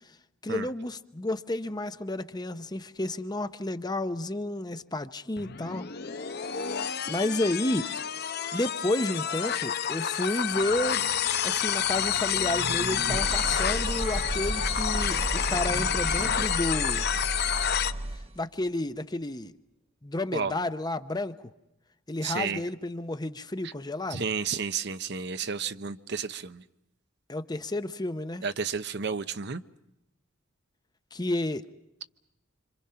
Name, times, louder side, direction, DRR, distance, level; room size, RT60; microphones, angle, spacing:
voice 1, 0.4-5.9 6.3-6.5 7.1-7.9 8.5-11.1 11.4-17.1 18.4-19.5 20.0-21.4 22.1-24.2 27.3-28.4 31.1-31.7, left 1 dB, 20° left, 0.8 m, -31 dB
sound 1, 5.4-17.9, left 8 dB, 50° left, 0.8 m, -29 dB
sound 2, 10.5-18.4, right 1 dB, 30° right, 1.0 m, -34 dB
voice 2, 22.2-22.6 24.1-26.6 28.4-29.6, right 6 dB, 55° right, 0.9 m, -32 dB
27.0 x 26.5 x 5.7 m
head